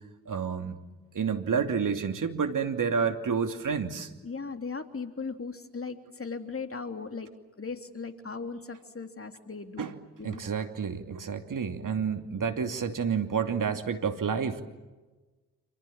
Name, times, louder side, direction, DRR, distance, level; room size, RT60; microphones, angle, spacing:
voice 1, 0.3-0.8 1.1-4.1 9.8-9.9 10.2-14.6, right 6 dB, 45° right, 6 dB, 2.8 m, -29 dB
voice 2, 4.2-7.3 7.6-10.4, left 4 dB, 30° left, 7 dB, 3.3 m, -38 dB
28.0 x 28.0 x 7.4 m, 1.2 s
hypercardioid pair, 45°, 42 cm